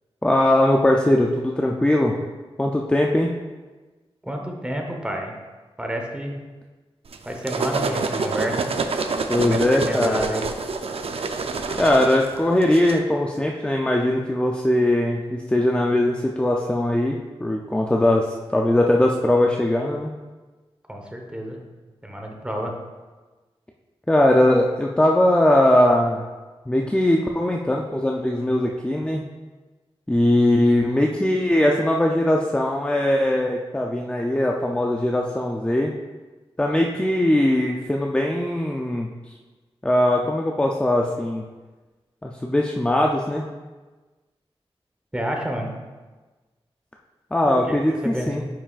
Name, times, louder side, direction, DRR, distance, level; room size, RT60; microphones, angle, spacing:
voice 1, 0.2-2.1 2.6-3.3 9.3-10.3 11.8-20.1 24.1-26.3 26.7-29.2 30.1-35.9 36.6-39.1 39.8-41.4 42.2-43.5 47.3-48.4, left 1 dB, 10° left, 0 dB, 0.5 m, -20 dB
voice 2, 4.2-5.4 5.8-6.4 7.2-8.7 9.4-10.5 20.9-21.6 22.0-22.7 45.1-45.8 47.4-48.5, right 1 dB, 10° right, 1 dB, 1.0 m, -29 dB
sound 1, 7.1-13.0, right 4 dB, 70° right, 0.5 m, -27 dB
9.6 x 5.7 x 2.5 m, 1.3 s
wide cardioid pair, 100°, 10 cm